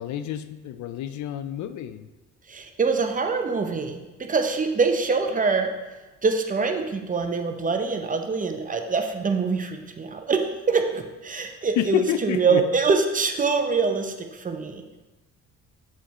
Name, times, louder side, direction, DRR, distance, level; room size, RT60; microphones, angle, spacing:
voice 1, 0.0-2.1 11.8-12.6, left 11 dB, 70° left, 10 dB, 0.4 m, -28 dB
voice 2, 2.5-5.7 6.2-15.0, right 4 dB, 25° right, 5 dB, 0.6 m, -24 dB
7.4 x 4.2 x 3.1 m, 1.1 s
cardioid pair, 90°, 30 cm